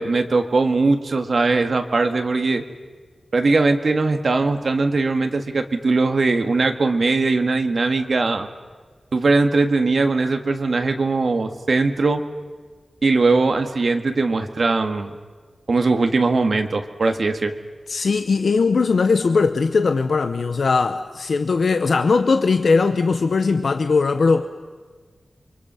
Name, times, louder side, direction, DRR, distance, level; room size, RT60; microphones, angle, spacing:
voice 1, 0.0-2.6 3.3-8.5 9.1-12.2 13.0-15.1 15.7-17.5, right 3 dB, 65° right, 1.8 m, -20 dB
voice 2, 17.9-24.5, left 4 dB, 80° left, 0.9 m, -19 dB
29.0 x 24.0 x 5.8 m
wide cardioid pair, 80°, 0 cm